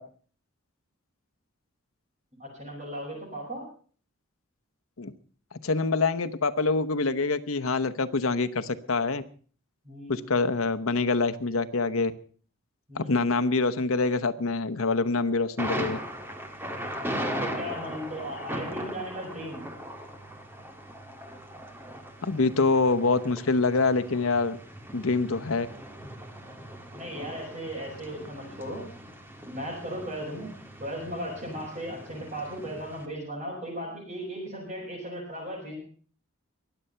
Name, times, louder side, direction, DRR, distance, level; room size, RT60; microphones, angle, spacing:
voice 1, 2.4-3.6 9.8-10.2 12.9-13.2 16.7-17.1 17.4-19.6 26.9-28.9 29.5-30.5 30.8-35.7, equal, 35° right, -7 dB, 5.8 m, -37 dB
voice 2, 5.6-9.2 10.1-12.1 12.9-16.0 22.2-24.6 24.9-25.7, left 3 dB, 80° left, 11 dB, 1.0 m, -25 dB
Thunder, 15.6-33.0, equal, 10° right, 1.7 m, -39 dB
22.5 x 7.9 x 5.7 m, 0.43 s
head